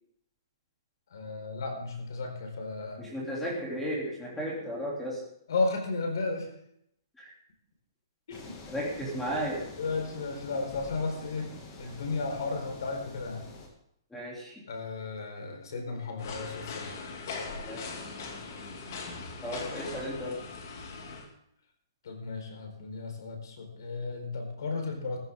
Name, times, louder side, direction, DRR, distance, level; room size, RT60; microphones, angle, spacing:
voice 1, 1.1-3.0 5.5-6.5 8.3-8.5 9.8-11.5 11.8-13.5 14.7-16.9 22.0-25.2, left 3 dB, 65° left, 3 dB, 4.7 m, -34 dB
voice 2, 3.0-5.3 7.2-7.3 8.7-9.7 14.1-14.6 17.6-17.9 19.4-20.4, equal, 5° left, -3 dB, 3.1 m, -34 dB
sound 1, 8.3-13.7, left 3 dB, 25° left, 2.2 m, -47 dB
sound 2, 16.2-21.3, left 4 dB, 45° left, 2.5 m, -40 dB
15.0 x 15.0 x 3.8 m, 0.73 s
hypercardioid pair, 170°, 2 cm